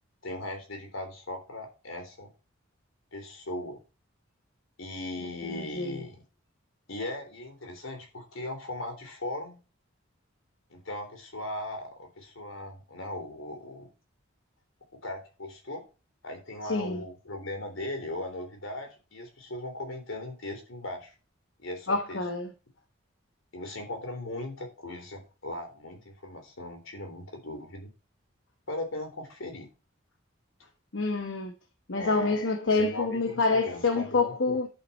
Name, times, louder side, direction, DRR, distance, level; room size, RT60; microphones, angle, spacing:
voice 1, 0.2-2.3 3.1-3.8 4.8-6.2 6.9-9.6 10.7-13.9 15.0-15.8 16.2-21.1 21.6-22.2 23.5-27.9 28.7-29.7 31.9-32.3 32.8-34.6, left 1 dB, 75° left, 3.4 m, -38 dB
voice 2, 5.4-6.0 16.6-17.0 21.9-22.5 30.9-31.5 31.9-34.7, left 3 dB, 60° left, 1.0 m, -27 dB
11.0 x 5.8 x 4.3 m
head